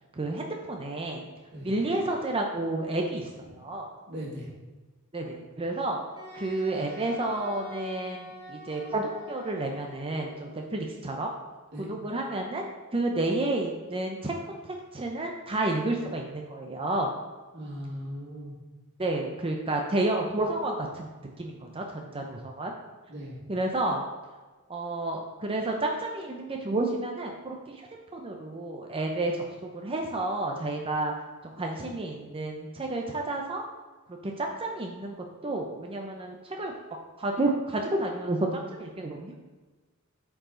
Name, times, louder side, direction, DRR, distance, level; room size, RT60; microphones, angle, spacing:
voice 1, 0.1-1.2 1.6-3.9 5.1-6.0 6.3-11.3 11.8-12.7 12.9-17.1 19.0-21.1 21.4-22.7 23.5-24.0 24.7-27.8 28.1-29.4 29.7-31.1 31.4-33.6 34.4-36.7 37.2-39.4, right 2 dB, 25° right, 1 dB, 0.6 m, -30 dB
voice 2, 4.1-4.5 11.7-11.9 17.5-18.6 23.1-23.4, equal, 55° right, -5 dB, 2.4 m, -38 dB
Wind instrument woodwind instrument, 6.2-10.4, left 1 dB, 25° left, 2.2 m, -46 dB
9.0 x 4.8 x 3.8 m, 1.2 s
head